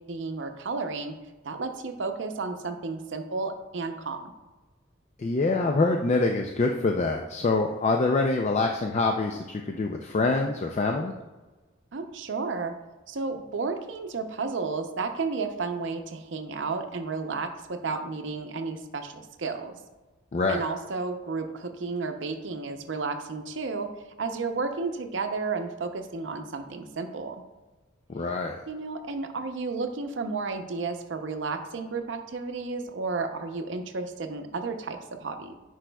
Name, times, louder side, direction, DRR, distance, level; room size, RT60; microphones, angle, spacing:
voice 1, 0.1-1.1 1.4-4.3 11.9-12.7 13.1-19.8 20.5-23.9 24.2-27.4 28.7-35.5, right 4 dB, 65° right, 6 dB, 0.6 m, -32 dB
voice 2, 5.2-11.1 20.3-20.6 28.1-28.6, left 3 dB, 35° left, 2 dB, 0.4 m, -25 dB
10.0 x 4.7 x 2.3 m, 1.2 s
head